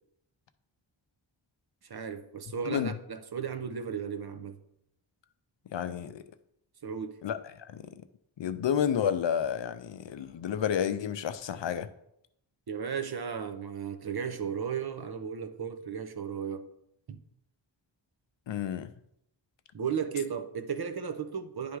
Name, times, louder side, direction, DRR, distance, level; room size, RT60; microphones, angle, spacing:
voice 1, 1.8-4.6 6.8-7.2 12.7-16.7 17.1-17.2 19.7-21.8, right 7 dB, 50° right, 0.7 m, -35 dB
voice 2, 5.7-6.2 7.2-8.0 8.4-11.9 18.5-18.9, left 8 dB, 65° left, 0.6 m, -31 dB
10.0 x 3.4 x 4.7 m
wide cardioid pair, 110°, 48 cm